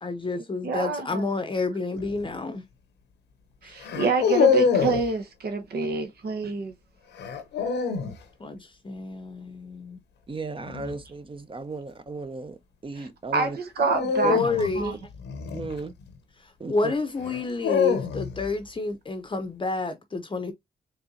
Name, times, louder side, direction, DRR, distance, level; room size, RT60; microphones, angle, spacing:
voice 1, 0.0-2.6 3.6-3.8 8.4-10.0 14.2-15.0 16.4-20.5, left 3 dB, 30° left, 0.7 m, -29 dB
voice 2, 0.6-1.3 3.6-6.7 13.0-14.4 14.8-14.9, right 4 dB, 70° right, 1.1 m, -27 dB
sound 1, 2.0-2.3 3.8-5.1 7.2-8.2 10.6-11.0 13.8-16.2 17.2-18.5, left 6 dB, 85° left, 0.8 m, -25 dB
voice 3, 10.3-13.6 14.2-14.4 15.5-15.9 16.6-16.9, right 3 dB, 30° right, 0.8 m, -36 dB
4.4 x 3.2 x 2.7 m
supercardioid pair, 50°, 17 cm